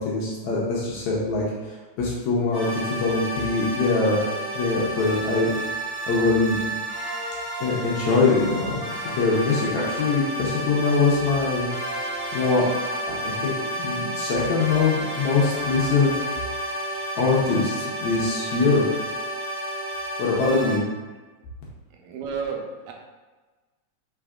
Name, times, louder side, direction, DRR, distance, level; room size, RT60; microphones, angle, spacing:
voice 1, 0.0-4.2 4.5-5.5 6.1-6.6 7.6-11.7 12.3-12.6 13.1-16.1 17.2-18.9 20.2-20.8, left 3 dB, 75° left, -5 dB, 2.0 m, -23 dB
sound 1, 2.5-20.8, right 1 dB, 50° left, 2.1 m, -31 dB
voice 2, 21.9-22.9, right 5 dB, 85° right, 1 dB, 2.0 m, -32 dB
6.1 x 3.4 x 2.4 m, 1.3 s
omnidirectional pair, 3.4 m